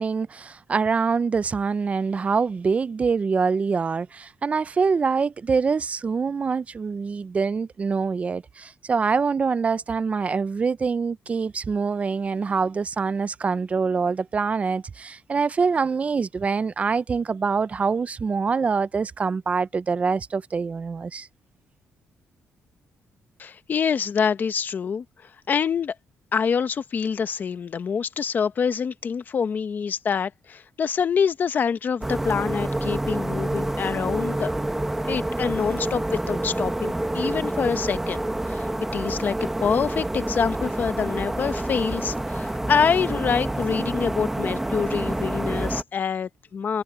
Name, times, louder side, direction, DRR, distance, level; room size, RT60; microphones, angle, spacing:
voice 1, 0.0-21.3, right 5 dB, 30° right, 0.4 m, -25 dB
voice 2, 23.4-25.0 25.5-25.9 26.3-34.5 35.0-39.3 39.6-46.8, left 6 dB, 40° left, 1.0 m, -26 dB
sound 1, 32.0-45.8, right 1 dB, 10° right, 1.1 m, -28 dB
cardioid pair, 145°, 5 cm